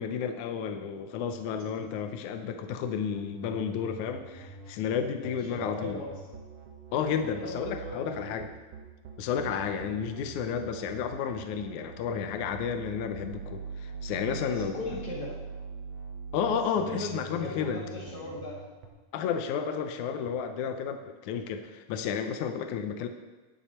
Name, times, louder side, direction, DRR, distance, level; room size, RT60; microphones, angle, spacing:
voice 1, 0.0-6.0 6.9-8.5 9.2-14.7 16.3-17.8 19.1-23.1, left 7 dB, 85° left, 7 dB, 1.7 m, -32 dB
sound 1, 3.1-18.9, right 5 dB, 65° right, 1.6 m, -43 dB
voice 2, 5.2-6.2 7.0-8.4 9.4-9.6 14.2-15.4 16.4-18.6, left 1 dB, 40° left, -7 dB, 4.7 m, -39 dB
17.5 x 7.2 x 4.3 m, 1.2 s
omnidirectional pair, 4.4 m